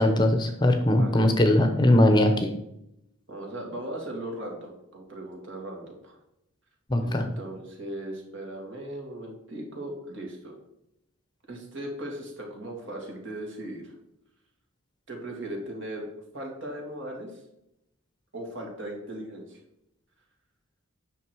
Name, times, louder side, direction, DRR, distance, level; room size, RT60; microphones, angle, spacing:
voice 1, 0.0-2.5 6.9-7.3, left 1 dB, 20° left, 6 dB, 0.8 m, -20 dB
voice 2, 0.9-1.3 1.9-2.0 3.3-6.2 7.0-10.6 11.5-13.8 15.1-16.1 16.3-17.4 18.3-19.6, right 1 dB, 60° right, 0 dB, 2.8 m, -38 dB
9.1 x 6.4 x 4.7 m, 0.83 s
head